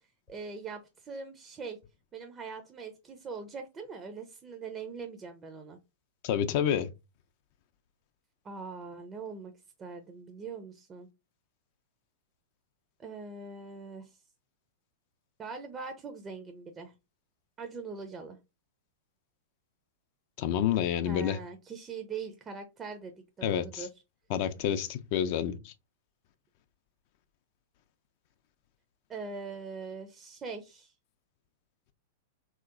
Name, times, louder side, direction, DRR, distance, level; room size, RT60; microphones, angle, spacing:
voice 1, 0.3-1.8 2.1-5.8 8.4-9.5 9.8-11.1 13.0-14.1 15.4-16.9 17.6-18.4 21.0-23.9 29.1-30.9, right 4 dB, 25° right, 0.5 m, -42 dB
voice 2, 6.2-6.9 20.4-21.4 23.4-23.9 24.3-25.7, left 9 dB, 55° left, 0.4 m, -29 dB
3.1 x 2.8 x 2.4 m
hypercardioid pair, 105°, 0 cm